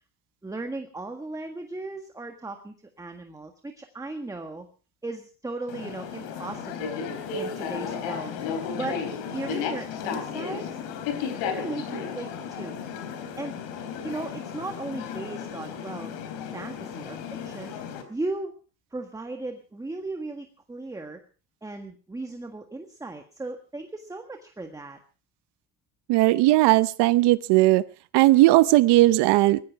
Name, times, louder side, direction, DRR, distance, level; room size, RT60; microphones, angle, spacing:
voice 1, 0.4-4.7 5.0-7.1 7.3-9.0 9.3-10.8 11.3-12.8 13.4-13.5 14.0-16.1 16.5-17.7 18.1-18.5 18.9-21.2 21.6-25.0, right 2 dB, 10° right, 5 dB, 1.6 m, -36 dB
sound 1, 5.7-18.0, left 7 dB, 75° left, 4.1 m, -34 dB
voice 2, 26.1-27.8 28.1-29.6, right 18 dB, 65° right, 15 dB, 0.9 m, -18 dB
19.5 x 14.5 x 4.6 m, 0.38 s
cardioid pair, 125°, 44 cm